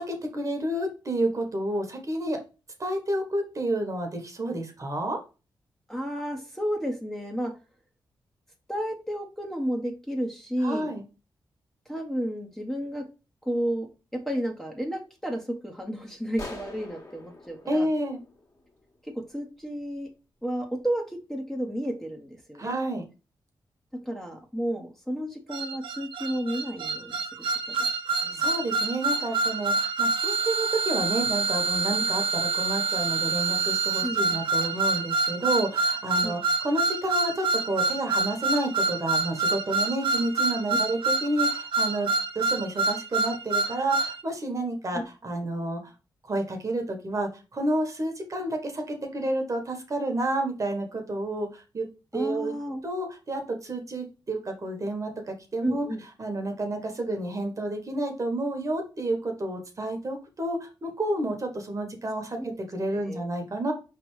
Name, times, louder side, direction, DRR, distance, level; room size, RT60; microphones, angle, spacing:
voice 1, 0.0-2.4 2.8-5.2 10.6-11.0 17.7-18.2 22.6-23.0 28.4-42.1 42.3-45.9 46.2-51.9 52.1-52.5 52.8-55.9 56.2-63.7, right 1 dB, 40° right, 3 dB, 1.3 m, -30 dB
voice 2, 5.9-7.5 8.7-10.9 11.9-13.0 13.4-17.9 19.1-20.1 20.4-21.0 21.3-22.8 24.0-27.2 27.8-27.9 28.2-28.4 32.0-32.1 34.0-34.4 36.2-36.4 44.9-45.0 52.1-52.8 55.6-56.0 62.4-62.5 63.1-63.2, equal, 5° left, 2 dB, 1.0 m, -32 dB
sound 1, 16.4-19.0, left 2 dB, 40° left, 1.8 m, -43 dB
sound 2, 25.5-44.2, right 3 dB, 85° right, 0.6 m, -27 dB
5.0 x 3.4 x 3.2 m, 0.31 s
cardioid pair, 80°, 8 cm